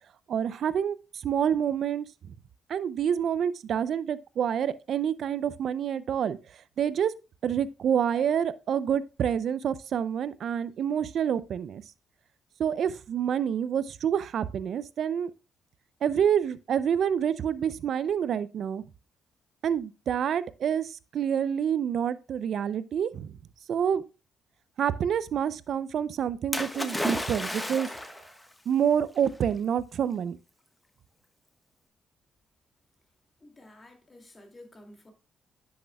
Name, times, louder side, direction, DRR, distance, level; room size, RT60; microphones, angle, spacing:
voice 1, 0.3-1.0 1.2-2.1 2.7-6.4 6.8-7.1 7.4-11.8 12.6-15.3 16.0-18.8 19.6-23.3 23.7-24.0 24.8-27.9 28.7-30.4, right 8 dB, 65° right, 0.4 m, -27 dB
Splash splatter, 26.5-28.3 29.3-29.4, left 1 dB, 10° left, 1.2 m, -32 dB
voice 2, 33.4-35.1, left 1 dB, 30° left, 2.3 m, -51 dB
10.0 x 6.5 x 2.2 m
supercardioid pair, 60°, 0 cm